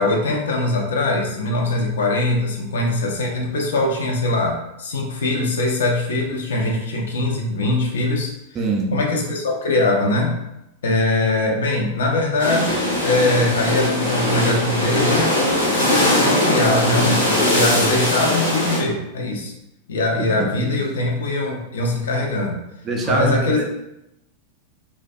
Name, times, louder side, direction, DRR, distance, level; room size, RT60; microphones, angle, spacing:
voice 1, 0.0-8.3 8.9-10.4 10.8-15.3 15.7-19.5 19.9-22.6 23.0-23.7, left 2 dB, 65° left, 0 dB, 0.4 m, -22 dB
voice 2, 8.5-9.0 20.2-20.8 22.8-23.7, right 3 dB, 25° right, 0 dB, 0.4 m, -24 dB
sound 1, 12.4-18.8, left 1 dB, 80° left, 1.0 m, -20 dB
2.3 x 2.1 x 2.5 m, 0.86 s
figure-of-eight pair, 90°, 0 cm